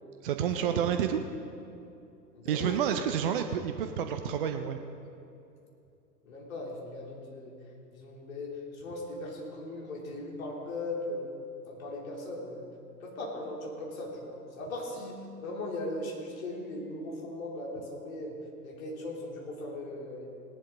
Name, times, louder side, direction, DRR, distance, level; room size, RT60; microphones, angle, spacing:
voice 1, 0.2-1.2 2.4-4.8, right 9 dB, 35° right, 7 dB, 0.5 m, -29 dB
voice 2, 2.4-2.8 6.2-7.5 7.9-11.3 11.7-12.7 13.0-18.4 18.6-20.3, left 2 dB, 55° left, -2 dB, 3.4 m, -38 dB
18.0 x 11.0 x 3.9 m, 2.7 s
figure-of-eight pair, 105°, 49 cm